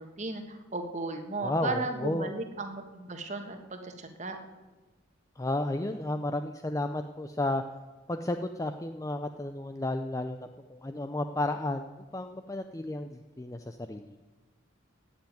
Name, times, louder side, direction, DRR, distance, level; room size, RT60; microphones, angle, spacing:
voice 1, 0.0-4.4, right 2 dB, 35° right, 6 dB, 1.5 m, -35 dB
voice 2, 1.4-2.3 5.4-7.6 8.1-11.8 12.1-14.1, left 1 dB, 15° left, 8 dB, 0.4 m, -32 dB
16.5 x 7.0 x 9.3 m, 1.2 s
head